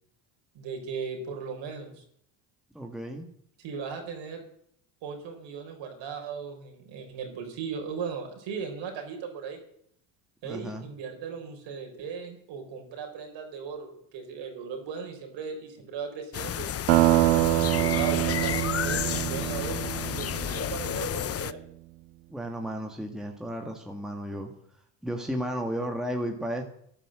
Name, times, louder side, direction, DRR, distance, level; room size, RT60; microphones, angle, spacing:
voice 1, 0.5-2.0 3.6-4.4 5.0-9.6 10.4-16.8 17.5-21.6, right 6 dB, 65° right, 4 dB, 4.2 m, -37 dB
voice 2, 2.7-3.3 10.4-10.9 22.3-24.5 25.0-26.6, equal, ahead, 2 dB, 2.0 m, -33 dB
sound 1, 16.3-21.5, left 10 dB, 30° left, 0.6 m, -31 dB
sound 2, 16.9-21.2, right 19 dB, 85° right, 0.6 m, -25 dB
12.5 x 11.0 x 7.7 m, 0.68 s
supercardioid pair, 85°, 47 cm